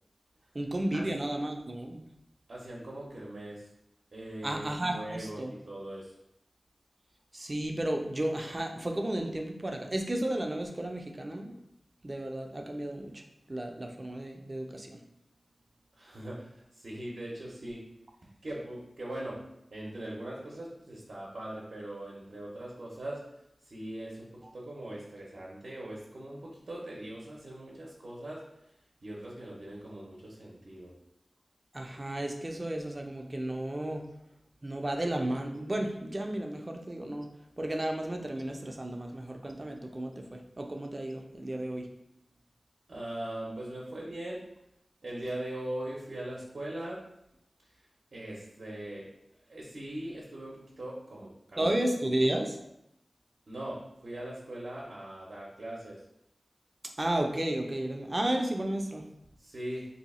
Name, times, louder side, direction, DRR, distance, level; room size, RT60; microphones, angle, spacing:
voice 1, 0.5-2.0 4.4-5.6 7.3-11.6 12.0-13.2 13.5-15.0 31.7-34.0 34.6-37.3 37.6-41.9 51.6-52.6 57.0-59.0, right 1 dB, 40° right, 3 dB, 0.5 m, -33 dB
voice 2, 2.5-3.7 4.1-6.1 16.0-17.9 18.4-19.4 19.7-23.2 23.6-28.4 29.0-30.9 42.9-44.4 45.0-47.1 48.1-49.1 49.5-51.6 53.5-56.0 59.4-59.9, right 1 dB, 75° right, -5 dB, 0.7 m, -40 dB
2.7 x 2.3 x 4.1 m, 0.81 s
wide cardioid pair, 50°, 0 cm